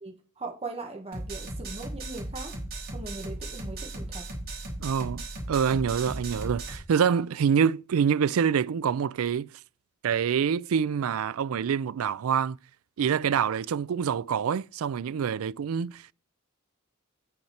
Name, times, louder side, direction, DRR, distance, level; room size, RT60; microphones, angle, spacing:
voice 1, 0.0-2.5 2.9-4.2, right 3 dB, 30° right, 1.6 m, -39 dB
sound 1, 1.1-6.8, right 2 dB, 45° right, 4.1 m, -37 dB
voice 2, 4.8-9.5 10.0-12.6 13.0-16.1, right 7 dB, 75° right, 0.4 m, -26 dB
8.6 x 6.5 x 4.3 m
head